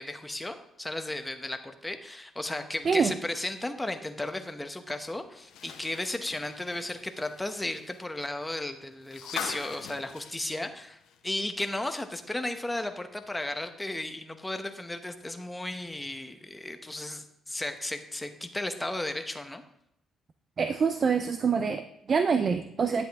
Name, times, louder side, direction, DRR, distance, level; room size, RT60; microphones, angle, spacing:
voice 1, 0.0-19.6, left 1 dB, 10° left, 7 dB, 0.9 m, -35 dB
sound 1, 5.4-11.4 11.7-11.8 13.2-13.3, left 7 dB, 85° left, 0.9 m, -43 dB
voice 2, 20.6-23.1, right 5 dB, 45° right, 9 dB, 0.5 m, -26 dB
10.5 x 7.9 x 3.5 m, 0.80 s
cardioid pair, 90°, 0 cm